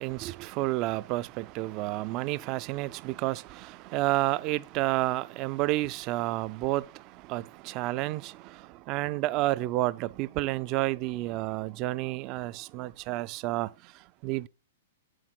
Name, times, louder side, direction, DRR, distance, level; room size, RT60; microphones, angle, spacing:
voice 1, 0.0-14.5, right 17 dB, 40° right, 0.4 m, -30 dB
8.6 x 7.8 x 3.9 m
hypercardioid pair, 125°, 0 cm